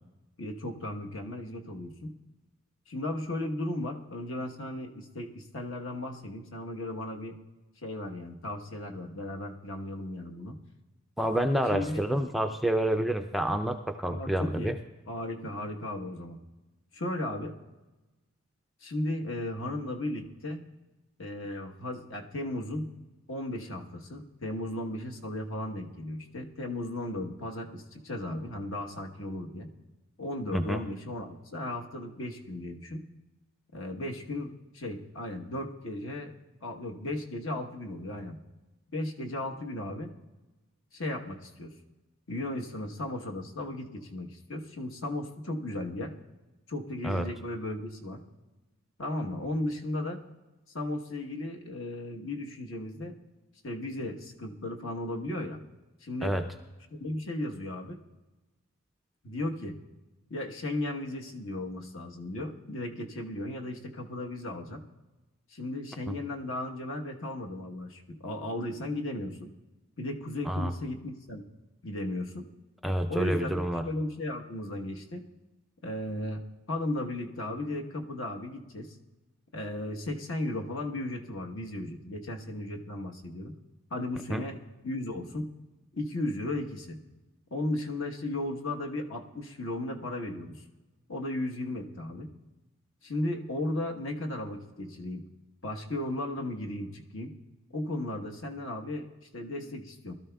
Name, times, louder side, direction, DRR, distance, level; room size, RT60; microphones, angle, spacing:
voice 1, 0.4-2.1 2.9-7.4 7.8-10.6 11.7-12.0 14.1-14.7 15.1-16.4 16.9-17.5 18.8-20.6 21.2-22.9 23.3-29.7 30.2-33.0 33.7-36.3 36.6-38.4 38.9-40.1 40.9-41.7 42.3-46.1 46.7-48.2 49.0-50.2 50.7-53.1 53.6-55.6 56.0-56.4 56.9-58.0 59.2-59.8 60.3-64.8 65.5-69.5 70.0-71.4 71.8-72.5 73.1-75.2 75.8-79.0 79.5-83.5 83.9-84.6 84.8-85.5 85.9-87.0 87.5-90.6 91.1-92.3 93.0-95.2 95.6-97.3 97.7-99.1 99.3-100.1, left 1 dB, 60° left, 2 dB, 1.1 m, -35 dB
voice 2, 11.2-14.8 30.5-30.8 47.0-47.3 56.2-56.4 66.1-66.2 70.5-70.7 72.8-73.8 84.3-84.4, right 1 dB, ahead, 5 dB, 0.3 m, -28 dB
20.5 x 13.0 x 2.3 m, 1.1 s
head